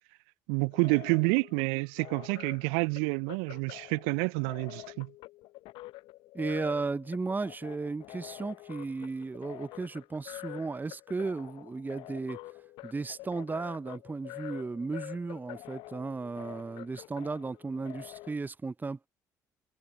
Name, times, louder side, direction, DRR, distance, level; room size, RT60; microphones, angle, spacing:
voice 1, 0.5-5.1, right 38 dB, 70° right, 0.6 m, -29 dB
sound 1, 0.6-18.3, left 19 dB, 60° left, 1.1 m, -47 dB
voice 2, 6.3-12.4 12.8-19.1, right 3 dB, 20° right, 0.8 m, -35 dB
figure-of-eight pair, 50°, 9 cm